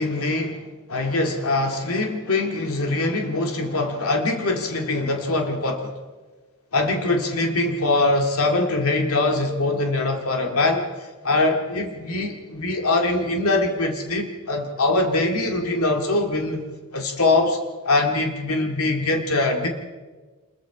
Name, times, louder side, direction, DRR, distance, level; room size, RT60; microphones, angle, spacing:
voice 1, 0.0-5.9 6.7-17.6 17.8-19.7, left 2 dB, 75° left, 3 dB, 2.2 m, -23 dB
26.0 x 22.0 x 4.9 m, 1.3 s
head